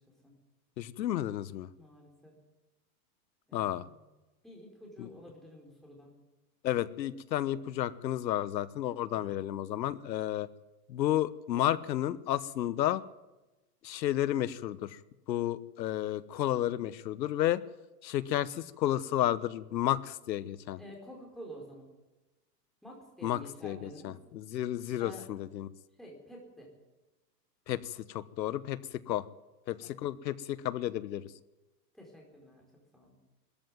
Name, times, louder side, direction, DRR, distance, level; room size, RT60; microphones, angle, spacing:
voice 1, 0.8-1.7 3.5-3.8 5.0-5.1 6.6-10.5 10.9-13.0 13.8-15.0 15.3-17.6 18.0-20.8 23.2-25.7 27.7-28.8 29.1-29.2 29.7-31.3, left 12 dB, 85° left, 16 dB, 1.2 m, -32 dB
voice 2, 1.7-2.3 3.5-4.0 4.4-6.1 9.1-9.3 20.8-21.9 22.8-24.2 25.0-25.2 26.0-26.7 29.8-29.9 31.9-32.6 32.9-33.2, equal, ahead, -2 dB, 4.5 m, -50 dB
20.5 x 14.0 x 9.3 m, 1.1 s
supercardioid pair, 165°, 49 cm